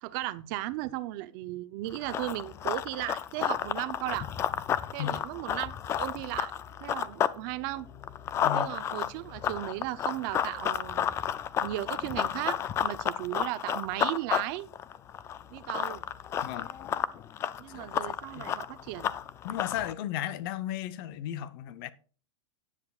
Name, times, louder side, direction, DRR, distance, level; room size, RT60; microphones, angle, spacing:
voice 1, 0.0-4.3 4.9-6.5 6.8-7.9 8.5-11.2 11.6-14.7 15.5-16.0 17.6-19.2, right 16 dB, 45° right, 0.6 m, -36 dB
Run, 1.9-7.4 7.7-19.9, left 9 dB, 15° left, 0.3 m, -32 dB
voice 2, 8.4-8.8 16.4-17.0 17.7-18.5 19.4-21.9, left 11 dB, 45° left, 0.8 m, -36 dB
15.0 x 9.8 x 2.4 m
supercardioid pair, 145°, 16 cm